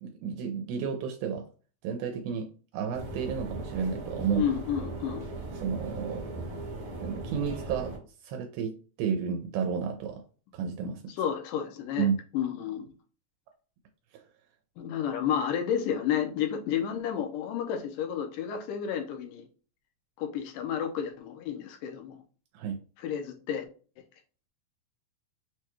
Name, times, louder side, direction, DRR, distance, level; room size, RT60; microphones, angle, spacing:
voice 1, 0.0-1.4 1.8-4.5 5.6-6.6 7.0-8.0 8.2-10.2 10.5-11.0 12.0-12.2 14.1-14.2 22.5-22.8, right 6 dB, 85° right, 2.4 m, -32 dB
sound 1, 2.9-8.0, right 2 dB, 60° right, 1.4 m, -38 dB
voice 2, 4.4-5.3 11.2-12.1 12.3-12.9 14.8-19.5 20.2-22.2 23.0-23.7, left 8 dB, 80° left, 2.1 m, -31 dB
6.2 x 2.2 x 3.0 m
omnidirectional pair, 4.3 m